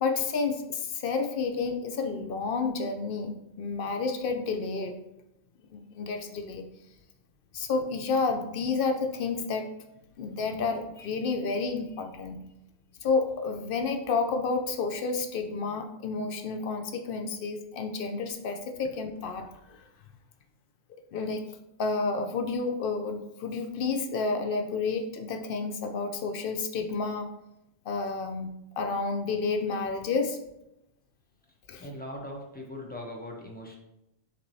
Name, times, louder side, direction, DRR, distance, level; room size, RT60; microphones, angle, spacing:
voice 1, 0.0-5.0 5.7-6.7 7.5-9.7 10.2-12.4 13.0-19.8 21.1-21.4 21.8-27.3 27.9-30.4 31.7-31.9, left 4 dB, 60° left, 6 dB, 0.6 m, -30 dB
voice 2, 31.8-33.8, left 1 dB, 10° left, -1 dB, 0.5 m, -40 dB
5.9 x 3.1 x 2.7 m, 0.85 s
omnidirectional pair, 1.2 m